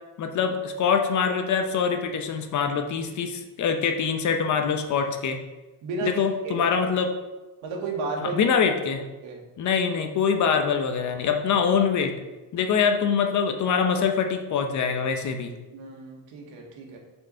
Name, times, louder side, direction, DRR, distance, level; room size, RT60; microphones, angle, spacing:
voice 1, 0.2-5.4 6.0-7.1 8.3-9.0 9.6-12.1 12.5-15.5, left 6 dB, 40° left, 6 dB, 0.7 m, -24 dB
voice 2, 5.8-6.7 7.6-8.6 9.2-9.4 15.7-17.0, right 3 dB, 75° right, 0 dB, 1.9 m, -33 dB
6.2 x 4.7 x 5.4 m, 1.1 s
cardioid pair, 155°, 46 cm